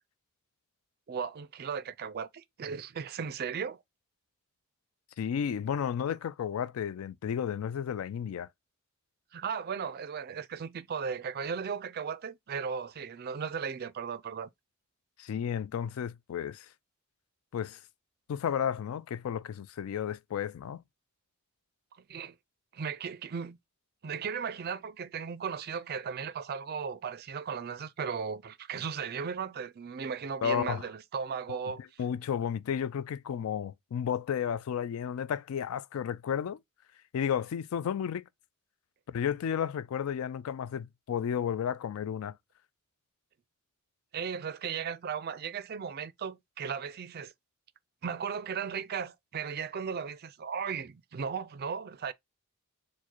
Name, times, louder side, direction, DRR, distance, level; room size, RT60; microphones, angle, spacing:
voice 1, 1.1-3.8 9.3-14.5 22.1-22.3 22.7-23.6 24.0-31.8 44.1-47.3 48.0-52.1, right 6 dB, 45° right, 0.4 m, -36 dB
voice 2, 5.2-8.5 15.2-16.7 17.5-17.8 18.3-20.8 30.4-30.8 32.0-36.6 37.1-38.2 39.1-42.4, left 8 dB, 75° left, 0.3 m, -32 dB
4.6 x 2.1 x 4.4 m
head